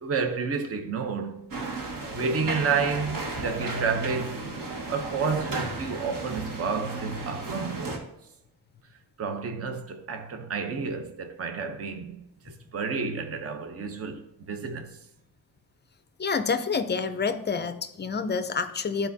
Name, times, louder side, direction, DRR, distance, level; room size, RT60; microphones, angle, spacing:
voice 1, 0.0-1.5 2.1-4.4 4.9-8.1 9.2-15.0, right 5 dB, 40° right, 0.7 m, -30 dB
sound 1, 1.5-8.0, right 2 dB, 55° right, 1.5 m, -34 dB
voice 2, 16.2-19.1, left 5 dB, 30° left, 0.4 m, -28 dB
12.5 x 4.4 x 2.7 m
wide cardioid pair, 155°, 38 cm